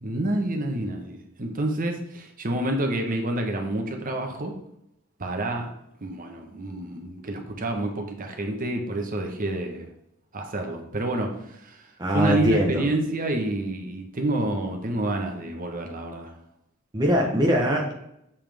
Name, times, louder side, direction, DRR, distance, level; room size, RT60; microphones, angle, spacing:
voice 1, 0.0-4.5 5.2-5.7 6.0-9.9 10.3-11.9 12.1-16.3, right 1 dB, 40° right, 3 dB, 1.1 m, -28 dB
voice 2, 12.0-12.9 16.9-17.9, equal, 20° right, -1 dB, 0.9 m, -22 dB
7.1 x 5.7 x 3.4 m, 0.80 s
head